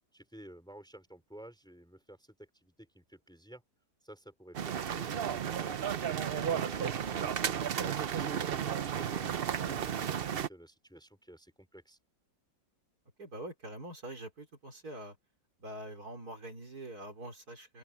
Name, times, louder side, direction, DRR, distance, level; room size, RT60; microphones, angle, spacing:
voice 1, 0.1-3.6 4.0-12.0, right 1 dB, ahead, 4.5 m, -52 dB
sound 1, 4.5-10.5, right 8 dB, 80° right, 0.5 m, -33 dB
voice 2, 13.2-15.2 15.6-17.8, right 1 dB, 50° right, 4.9 m, -44 dB
open air
omnidirectional pair, 2.0 m